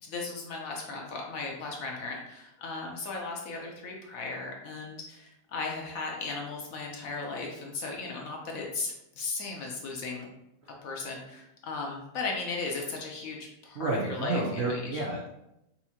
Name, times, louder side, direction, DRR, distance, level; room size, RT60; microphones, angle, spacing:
voice 1, 0.0-10.3 10.8-15.0, left 3 dB, 60° left, 0 dB, 1.0 m, -36 dB
voice 2, 13.7-15.3, right 2 dB, 90° right, -2 dB, 0.5 m, -30 dB
5.6 x 2.7 x 2.8 m, 0.85 s
omnidirectional pair, 1.9 m